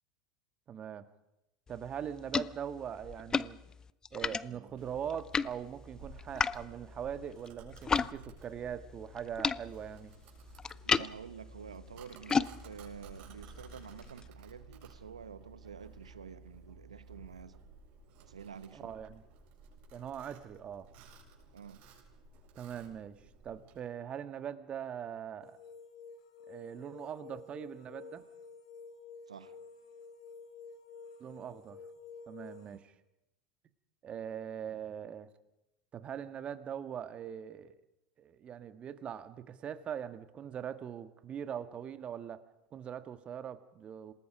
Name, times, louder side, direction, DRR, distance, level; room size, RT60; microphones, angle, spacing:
voice 1, 0.7-1.0 1.7-3.6 4.1-10.1 18.7-19.2 19.9-20.9 22.5-23.2 23.4-25.6 26.5-28.2 31.2-31.8 32.3-32.9 34.0-35.3 35.9-37.8 38.2-42.4 42.7-44.1, right 8 dB, 35° right, 11 dB, 1.7 m, -41 dB
sound 1, 1.7-8.1 8.4-14.3, left 5 dB, 20° left, 0.7 m, -36 dB
Domestic sounds home sounds, 4.7-23.8, right 3 dB, 55° right, 7.5 m, -55 dB
voice 2, 10.8-17.6 18.2-18.9 21.5-21.8 29.3-29.6, right 7 dB, 90° right, 14 dB, 1.0 m, -49 dB
sound 2, 25.4-32.8, left 5 dB, 70° left, 2.9 m, -51 dB
27.0 x 19.5 x 5.1 m, 0.92 s
hypercardioid pair, 85°, 3 cm